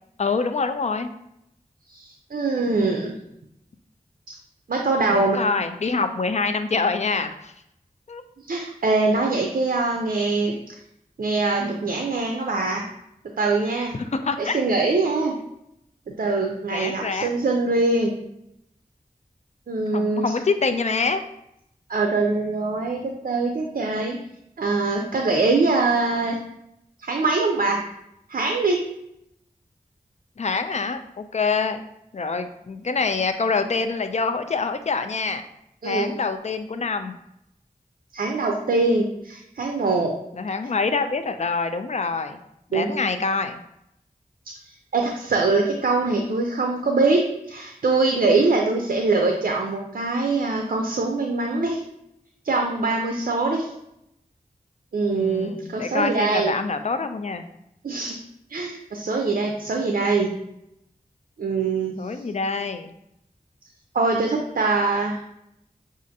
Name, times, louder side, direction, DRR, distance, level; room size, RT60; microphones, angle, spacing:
voice 1, 0.2-1.1 5.1-7.5 8.1-8.2 14.0-14.6 16.7-17.3 19.9-21.2 30.4-31.8 32.1-35.4 35.8-37.1 40.4-42.4 42.7-43.6 55.1-57.4 62.0-62.9, left 4 dB, 50° left, 8 dB, 0.4 m, -25 dB
voice 2, 1.9-3.1 4.3-4.4 4.7-5.4 8.5-10.7 11.2-12.8 13.4-13.9 14.4-15.4 16.1-18.2 19.7-20.3 21.9-24.2 24.6-26.4 27.0-27.8 28.3-28.8 35.8-36.1 38.1-40.1 42.7-42.9 44.9-47.2 47.5-51.8 52.4-53.7 54.9-56.5 57.8-58.2 58.5-60.3 61.4-61.9 63.9-65.2, right 3 dB, 70° right, 1 dB, 0.5 m, -23 dB
6.2 x 2.5 x 2.7 m, 0.81 s
wide cardioid pair, 60°, 15 cm